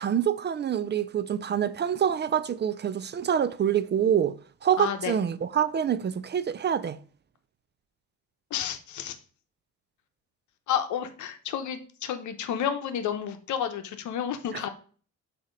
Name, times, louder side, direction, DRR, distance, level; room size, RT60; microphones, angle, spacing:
voice 1, 0.0-4.4 4.6-7.0 14.5-14.7, right 8 dB, 35° right, 0.4 m, -26 dB
voice 2, 4.8-5.1 8.5-9.2 10.7-14.7, left 8 dB, 75° left, 0.9 m, -31 dB
7.2 x 2.9 x 5.1 m
cardioid pair, 90°, 30 cm